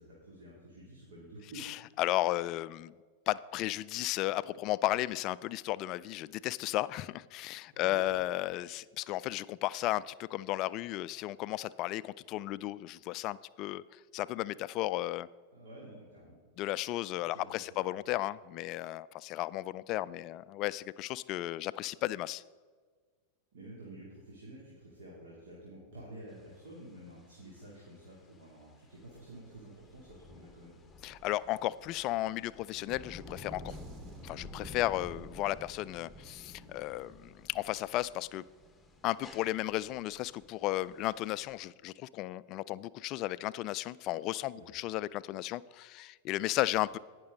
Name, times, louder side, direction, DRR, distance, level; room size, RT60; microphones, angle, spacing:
voice 1, 0.0-1.6 7.7-8.3 15.5-16.4 17.3-17.9 23.5-30.8 44.5-44.7, right 1 dB, 60° right, -5 dB, 2.7 m, -50 dB
voice 2, 1.6-2.9 3.3-15.3 16.6-22.4 31.0-33.8 34.2-38.4 39.0-47.0, left 16 dB, 40° left, 19 dB, 0.3 m, -34 dB
sound 1, 26.3-41.6, left 2 dB, 10° left, 1.1 m, -52 dB
sound 2, 33.7-38.2 38.5-38.8, right 4 dB, 30° right, 1.4 m, -57 dB
18.0 x 6.1 x 3.8 m, 1.5 s
figure-of-eight pair, 90°, 0 cm